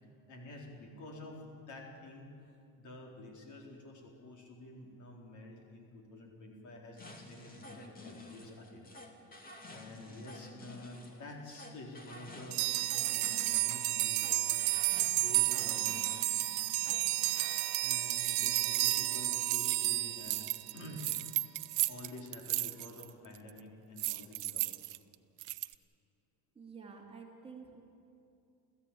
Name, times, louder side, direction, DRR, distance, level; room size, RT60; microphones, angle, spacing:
voice 1, 0.3-2.4 2.8-8.9 9.7-12.6 12.9-14.6 15.2-16.0 17.8-20.4 20.7-21.1 21.9-24.7, left 1 dB, 50° left, 0 dB, 4.2 m, -49 dB
sound 1, 7.0-17.8, left 2 dB, 20° left, 2.4 m, -51 dB
sound 2, 12.5-21.0, right 17 dB, 75° right, 1.1 m, -32 dB
sound 3, 18.2-19.9 20.2-23.1 23.3-23.6 24.0-25.7, right 17 dB, 50° right, 0.7 m, -36 dB
voice 2, 26.5-27.8, right 5 dB, 15° right, -2 dB, 3.0 m, -50 dB
29.5 x 15.0 x 8.7 m, 2.6 s
cardioid pair, 165°, 39 cm